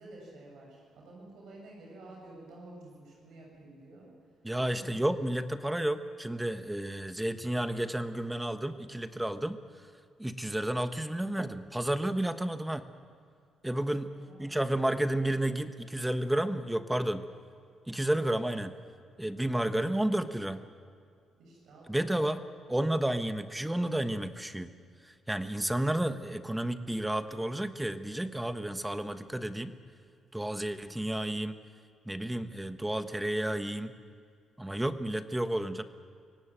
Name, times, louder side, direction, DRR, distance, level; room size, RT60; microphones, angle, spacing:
voice 1, 0.0-4.1 4.7-5.0 13.6-13.8 14.1-14.5 21.4-22.2, right 2 dB, 75° right, -2 dB, 7.8 m, -50 dB
voice 2, 4.4-9.6 10.2-12.8 13.6-14.1 14.4-17.2 17.9-18.7 19.2-20.6 21.9-22.4 22.7-24.7 25.3-29.7 30.3-31.6 32.1-33.9 34.6-35.8, right 1 dB, 10° right, 9 dB, 1.2 m, -31 dB
24.5 x 17.5 x 9.1 m, 2.3 s
cardioid pair, 90°, 0 cm